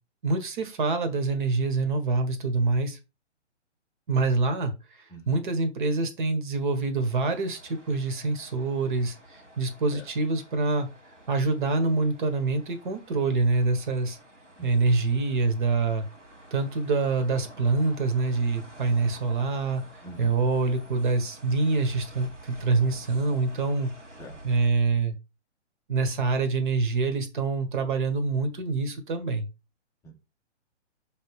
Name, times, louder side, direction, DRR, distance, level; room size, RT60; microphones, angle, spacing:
voice 1, 0.2-3.0 4.1-4.7 5.3-10.9 11.3-14.2 14.6-16.0 16.5-19.8 20.2-23.9 24.4-25.1 25.9-29.5, right 3 dB, 45° right, 8 dB, 1.5 m, -25 dB
voice 2, 5.1-5.4 9.9-10.0 14.6-14.7 20.0-20.4 24.2-24.4 30.0-30.1, right 1 dB, 10° left, 2 dB, 0.7 m, -44 dB
sound 1, 7.0-24.7, right 1 dB, 80° right, 1.9 m, -50 dB
6.4 x 3.5 x 4.8 m, 0.27 s
figure-of-eight pair, 125°, 36 cm